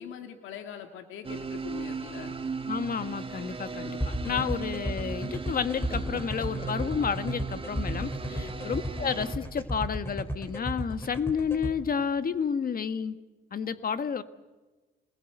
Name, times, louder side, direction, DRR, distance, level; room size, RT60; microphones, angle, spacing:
voice 1, 0.0-2.4 4.2-4.5 8.3-8.5, left 8 dB, 85° left, 5 dB, 2.4 m, -42 dB
sound 1, 1.2-9.3, right 4 dB, 25° right, 2.0 m, -37 dB
voice 2, 2.7-13.2 13.5-14.2, left 6 dB, 45° left, 11 dB, 1.6 m, -31 dB
sound 2, 3.5-5.2 5.5-7.8 9.4-10.9, left 2 dB, 25° left, 3.4 m, -47 dB
sound 3, 4.0-11.7, equal, 10° left, 4.7 m, -33 dB
26.0 x 20.5 x 8.1 m, 1.2 s
cardioid pair, 90°, 20 cm